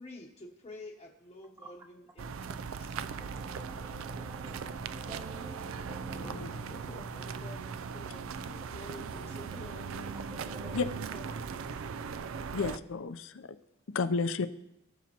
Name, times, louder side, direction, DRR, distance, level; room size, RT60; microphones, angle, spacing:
voice 1, 0.0-3.0 6.7-10.1 10.6-12.1, left 2 dB, 25° left, -4 dB, 0.9 m, -50 dB
sound 1, 2.2-12.8, right 6 dB, 65° right, 0.4 m, -39 dB
voice 2, 3.3-6.4 10.3-10.8 12.6-12.7, right 1 dB, 15° right, 5 dB, 0.8 m, -48 dB
voice 3, 6.2-6.6 10.7-10.9 12.5-13.5 13.9-14.5, left 4 dB, 60° left, 12 dB, 0.5 m, -32 dB
Piano, 6.2-8.7, equal, 5° left, 1.2 m, -54 dB
18.0 x 7.2 x 2.9 m, 0.85 s
head